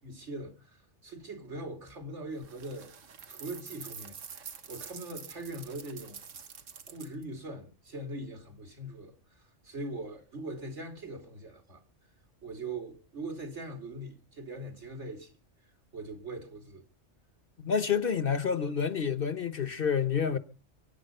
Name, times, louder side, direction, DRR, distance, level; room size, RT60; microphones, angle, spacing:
voice 1, 0.0-2.9 3.3-6.2 6.9-9.1 9.6-11.8 12.4-15.3 15.9-16.8, right 2 dB, 65° right, 3.1 m, -41 dB
sound 1, 2.4-7.2, right 6 dB, 90° right, 1.6 m, -47 dB
voice 2, 17.6-20.4, left 6 dB, 50° left, 1.1 m, -28 dB
24.0 x 9.7 x 5.5 m
omnidirectional pair, 1.3 m